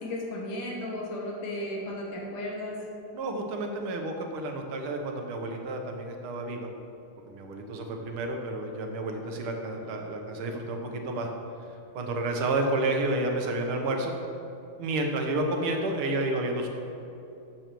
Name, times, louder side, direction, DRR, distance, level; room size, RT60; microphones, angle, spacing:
voice 1, 0.0-2.8, left 1 dB, 85° left, -3 dB, 2.3 m, -34 dB
voice 2, 3.1-6.7 7.3-11.3 11.9-14.2 14.8-16.7, right 2 dB, 75° right, 3 dB, 1.8 m, -30 dB
13.5 x 7.7 x 3.0 m, 2.7 s
omnidirectional pair, 2.4 m